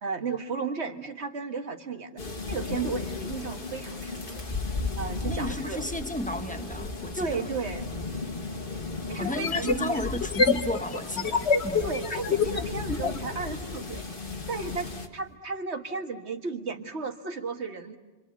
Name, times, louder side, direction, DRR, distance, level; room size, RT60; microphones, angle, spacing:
voice 1, 0.0-2.2 2.5-4.4 5.0-5.8 7.2-7.9 9.1-10.1 11.8-14.1 14.5-18.0, right 4 dB, 85° right, 1.9 m, -34 dB
sound 1, 2.2-15.1, left 3 dB, 55° left, 2.0 m, -35 dB
voice 2, 5.3-7.5 9.1-11.9, equal, 5° left, 1.2 m, -33 dB
sound 2, 7.8-7.9 9.2-13.2, left 5 dB, 80° left, 1.5 m, -27 dB
28.5 x 25.0 x 8.2 m
omnidirectional pair, 1.1 m